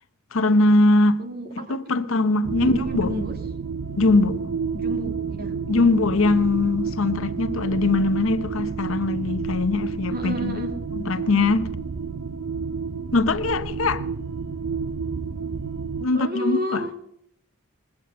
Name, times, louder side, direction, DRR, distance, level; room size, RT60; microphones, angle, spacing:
voice 1, 0.3-1.2 1.5-3.1 4.0-4.4 5.7-10.6 10.9-11.7 13.1-14.0 16.0-16.9, left 2 dB, 70° left, 0.8 m, -21 dB
voice 2, 1.2-2.0 2.6-3.3 4.7-5.5 10.1-10.7 16.1-16.9, equal, 45° right, 2.1 m, -31 dB
sound 1, 2.4-16.1, right 5 dB, 65° right, 0.6 m, -30 dB
20.0 x 8.4 x 7.8 m
head